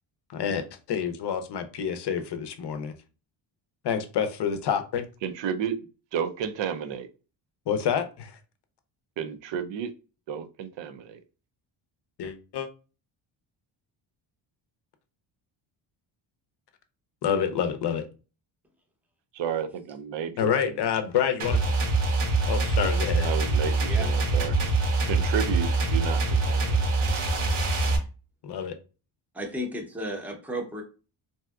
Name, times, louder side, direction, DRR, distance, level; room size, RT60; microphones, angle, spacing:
voice 1, 0.3-2.9 3.8-5.0 7.7-8.4 12.2-12.7 17.2-18.1 20.4-21.6 22.4-23.3 28.4-28.7, left 8 dB, 55° left, 0.6 m, -28 dB
voice 2, 5.2-5.8 6.1-7.1 9.2-9.9 10.3-11.2 19.3-20.7 23.2-24.6 25.0-26.8, right 8 dB, 60° right, 0.5 m, -32 dB
sound 1, 21.4-28.0, right 3 dB, 80° right, 1.2 m, -24 dB
voice 3, 29.3-30.8, equal, 5° right, 0.7 m, -33 dB
3.3 x 2.8 x 2.3 m
cardioid pair, 100°, 49 cm